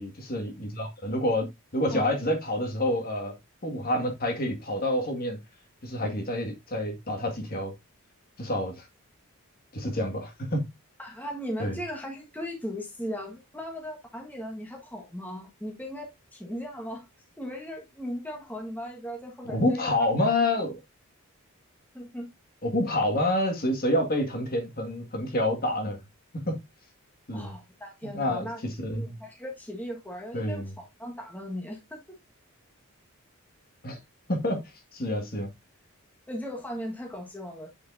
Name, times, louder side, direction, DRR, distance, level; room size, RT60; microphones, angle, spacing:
voice 1, 0.0-3.3 3.6-5.4 5.8-7.7 8.4-8.9 9.7-10.6 11.6-11.8 19.5-20.7 22.6-26.0 26.3-26.6 27.3-27.5 28.1-29.1 30.3-30.7 33.8-34.0 34.3-34.6 34.9-35.5, left 1 dB, 40° left, 1.9 m, -28 dB
voice 2, 11.0-17.1 17.4-19.9 21.9-22.3 27.3-28.6 28.9-32.0 36.3-37.7, equal, 5° left, 1.5 m, -37 dB
8.5 x 6.5 x 2.6 m
head